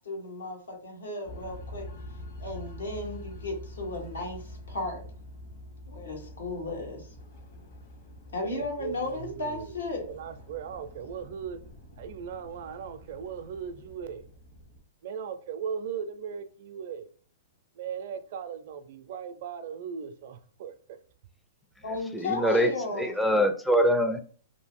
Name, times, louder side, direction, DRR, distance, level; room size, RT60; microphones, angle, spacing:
voice 1, 0.0-1.9 2.4-5.0 5.9-7.1 8.3-10.1 21.8-23.2, left 2 dB, 85° left, 1.2 m, -35 dB
sound 1, 1.2-14.8, left 1 dB, 55° left, 1.3 m, -46 dB
voice 2, 8.4-9.7 10.1-11.6 12.0-14.3 15.0-17.1 17.7-21.0, right 7 dB, 60° right, 0.4 m, -38 dB
voice 3, 22.1-24.2, equal, 5° left, 0.4 m, -24 dB
2.7 x 2.4 x 3.6 m
hypercardioid pair, 120°, 0 cm